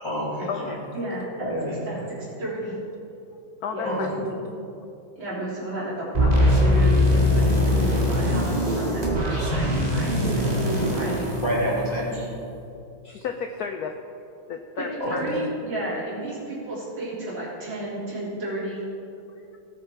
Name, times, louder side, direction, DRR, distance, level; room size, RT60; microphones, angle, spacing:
voice 1, 0.0-0.8 1.4-2.0 3.8-4.2 11.4-12.1 15.0-15.1, equal, 15° left, -8 dB, 3.2 m, -28 dB
voice 2, 0.9-1.3 1.9-2.8 3.7-4.5 5.2-9.0 9.5-11.3 12.0-12.3 14.8-18.8, right 1 dB, 75° right, -7 dB, 4.4 m, -32 dB
voice 3, 3.6-4.1 13.0-14.0 14.5-15.4 19.3-19.6, left 6 dB, 70° left, 6 dB, 0.9 m, -33 dB
sound 1, 6.1-12.3, left 1 dB, 20° right, 1.8 m, -22 dB
17.5 x 7.4 x 4.6 m, 2.7 s
omnidirectional pair, 2.2 m